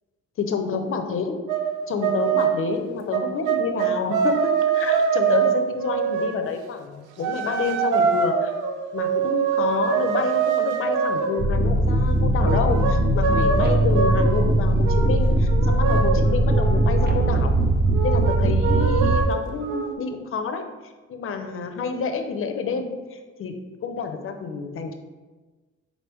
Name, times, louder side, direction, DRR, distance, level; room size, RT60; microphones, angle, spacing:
voice 1, 0.4-1.4 1.9-8.5 8.9-17.5 18.0-20.6 21.1-23.6 23.8-24.9, left 5 dB, 45° left, 6 dB, 0.5 m, -28 dB
sound 1, 1.5-1.7 2.0-2.6 3.1-6.5 7.2-11.4 12.4-14.5 14.8-15.1 15.5-17.5 17.9-19.9, right 6 dB, 85° right, 0.5 m, -24 dB
sound 2, 11.4-19.2, right 1 dB, 35° right, 0.5 m, -20 dB
4.0 x 3.4 x 3.0 m, 1.3 s
cardioid pair, 90°, 30 cm